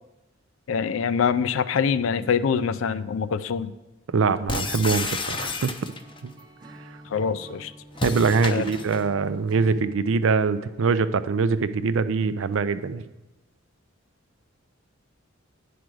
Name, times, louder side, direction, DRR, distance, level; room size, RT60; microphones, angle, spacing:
voice 1, 0.7-3.7 7.1-7.7 8.5-8.6, left 6 dB, 75° left, 14 dB, 0.4 m, -24 dB
voice 2, 4.1-5.9 6.2-6.3 8.0-13.0, right 4 dB, 70° right, 13 dB, 0.4 m, -23 dB
sound 1, 4.5-6.2 7.9-9.1, left 4 dB, 25° left, 0.6 m, -31 dB
Acoustic guitar / Strum, 5.8-9.9, equal, 20° right, 0.8 m, -46 dB
9.4 x 5.0 x 6.1 m, 1.0 s
head